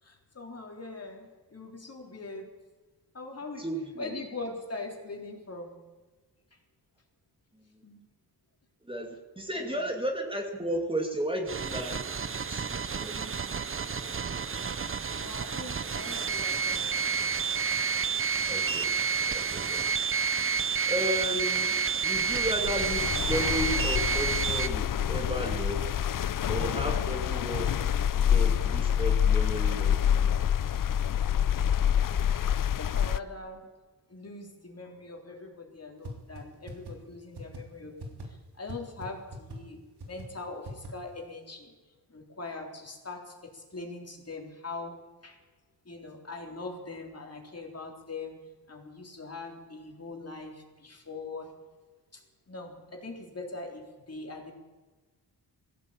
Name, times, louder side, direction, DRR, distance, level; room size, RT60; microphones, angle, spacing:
voice 1, 0.0-2.5 3.1-3.7 4.0-5.8 7.8-8.0 9.5-9.9 14.7-14.8 15.1-17.1 22.2-22.5 32.7-33.7 34.1-41.7 42.1-45.0 45.2-45.4 45.9-48.4 48.7-51.5 52.1-54.5, left 3 dB, 35° left, 2 dB, 3.7 m, -42 dB
voice 2, 3.6-4.1 8.9-12.0 12.5-13.3 18.5-18.9 19.3-19.8 20.9-21.8 22.0-25.8 26.5-27.7 28.1-30.3, equal, 10° right, 2 dB, 2.6 m, -34 dB
sound 1, 11.5-24.7, right 6 dB, 30° right, 0.8 m, -30 dB
sound 2, 22.1-33.2, left 9 dB, 50° left, 0.6 m, -27 dB
sound 3, 36.0-36.1 36.4-36.5 36.7-36.9 37.3-37.6 38.0-38.2 38.7-38.8 39.0-39.1 39.3-39.6 40.0-40.2 40.6-40.9, right 1 dB, 65° right, 3.3 m, -40 dB
19.0 x 16.0 x 8.8 m, 1.3 s
wide cardioid pair, 100°, 41 cm